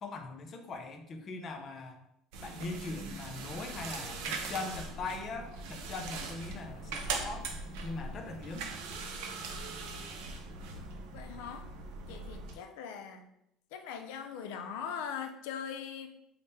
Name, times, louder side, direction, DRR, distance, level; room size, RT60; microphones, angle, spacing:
voice 1, 0.0-2.0 2.4-7.5 7.8-8.7, left 3 dB, 35° left, 5 dB, 0.5 m, -41 dB
sound 1, 2.3-12.5, right 3 dB, 80° right, 0.5 m, -41 dB
voice 2, 11.1-11.7 12.1-13.3 13.7-16.1, left 7 dB, 85° left, 6 dB, 0.5 m, -41 dB
3.5 x 2.1 x 4.1 m, 0.78 s
cardioid pair, 150°, 0 cm